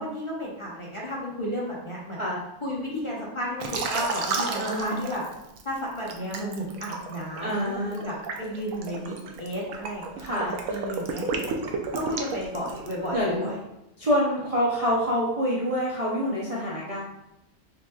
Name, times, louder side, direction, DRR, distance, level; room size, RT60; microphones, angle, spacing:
voice 1, 0.0-2.2 2.6-5.2 5.6-11.4 11.9-13.6, equal, 25° left, -5 dB, 0.8 m, -33 dB
Liquid, 3.6-5.6 6.1-13.1, right 4 dB, 85° right, 1.0 m, -32 dB
voice 2, 4.6-5.1 7.4-8.0 10.2-10.5 13.1-13.5 14.0-17.0, equal, 35° right, -7 dB, 0.6 m, -26 dB
6.5 x 2.8 x 2.3 m, 0.86 s
omnidirectional pair, 1.4 m